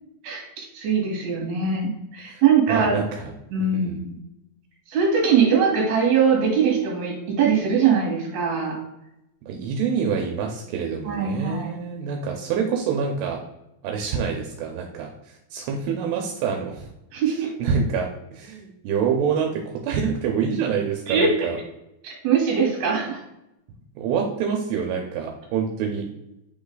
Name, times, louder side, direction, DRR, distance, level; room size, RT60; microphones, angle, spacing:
voice 1, 0.2-3.0 3.5-4.2 4.9-8.8 11.1-11.7 17.1-17.5 21.1-21.6 22.0-23.2, right 6 dB, 50° right, -2 dB, 2.8 m, -22 dB
voice 2, 2.7-3.3 3.6-4.0 9.5-13.4 13.8-16.9 17.6-21.5 24.0-26.0, right 6 dB, 80° right, 2 dB, 2.7 m, -26 dB
8.5 x 3.1 x 3.9 m, 0.89 s
omnidirectional pair, 4.9 m